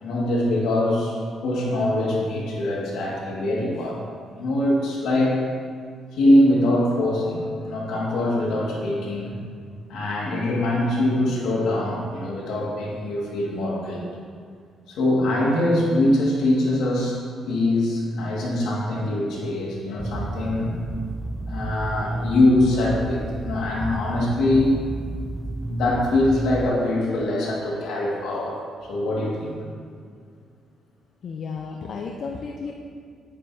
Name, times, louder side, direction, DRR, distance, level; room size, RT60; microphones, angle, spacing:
voice 1, 0.0-4.0 4.3-5.4 6.1-9.4 9.9-14.0 14.9-17.2 17.5-20.7 21.5-24.8 25.7-28.6 28.8-29.6, left 1 dB, 85° left, -3 dB, 1.9 m, -23 dB
sound 1, 20.0-26.7, right 1 dB, 15° right, 0.3 m, -31 dB
voice 2, 31.2-32.7, left 5 dB, 60° left, 1 dB, 0.5 m, -33 dB
9.8 x 8.7 x 2.8 m, 2.1 s
cardioid pair, 90°, 0 cm